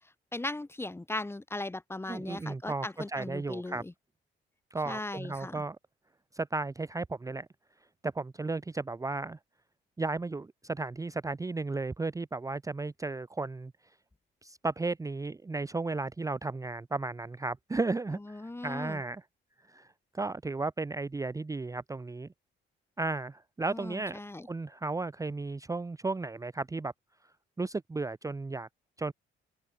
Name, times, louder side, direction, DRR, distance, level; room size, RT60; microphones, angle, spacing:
voice 1, 0.3-3.9 4.9-5.6 18.3-19.0 23.7-24.5, left 2 dB, 10° left, 1.3 m, -38 dB
voice 2, 2.1-3.8 4.7-5.8 6.3-7.5 8.0-9.4 10.0-13.7 14.4-19.2 19.7-19.9 20.1-22.3 23.0-24.2 24.4-26.9 27.6-28.7 29.0-29.1, right 3 dB, 15° right, 0.7 m, -34 dB
open air
cardioid pair, 90°, 20 cm